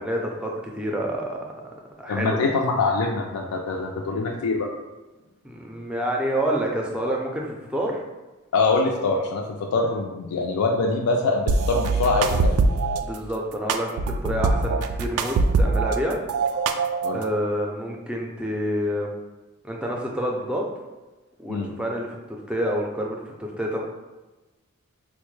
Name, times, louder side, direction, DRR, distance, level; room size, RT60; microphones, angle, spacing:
voice 1, 0.0-1.4 2.0-2.5 5.4-8.0 13.0-16.2 17.1-19.1 19.6-20.6 21.4-23.8, equal, 5° right, -1 dB, 0.4 m, -28 dB
voice 2, 2.1-4.7 8.5-9.4 9.7-12.6 17.0-17.2 21.5-21.7, left 3 dB, 85° left, 0 dB, 0.4 m, -24 dB
sound 1, 11.5-13.0 13.7-16.0 16.3-17.3, right 3 dB, 85° right, 0.3 m, -22 dB
4.2 x 2.1 x 3.1 m, 1.1 s
head